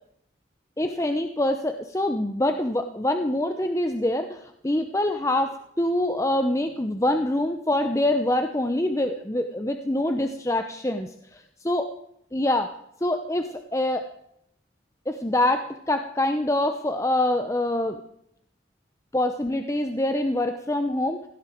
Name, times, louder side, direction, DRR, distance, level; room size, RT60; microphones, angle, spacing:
voice 1, 0.8-11.8 12.3-12.7 13.0-14.0 15.1-18.0 19.1-21.3, left 1 dB, 15° left, 7 dB, 0.7 m, -25 dB
19.0 x 16.5 x 4.6 m, 0.75 s
head